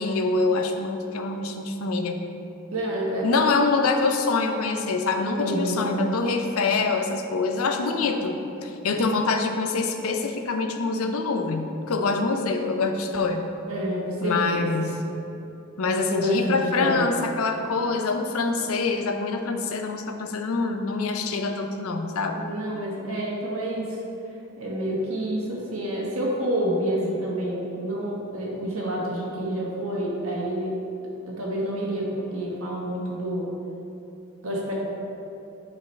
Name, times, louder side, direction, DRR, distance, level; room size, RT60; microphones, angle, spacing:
voice 1, 0.0-2.2 3.2-13.4 14.2-15.0 15.8-22.4, left 3 dB, 80° left, 5 dB, 0.6 m, -25 dB
voice 2, 2.7-3.3 5.4-5.9 13.7-14.6 16.1-17.0 22.3-24.0 24.6-30.8 31.3-33.5 34.4-34.7, right 1 dB, 80° right, -4 dB, 1.4 m, -28 dB
8.3 x 4.9 x 3.2 m, 2.8 s
head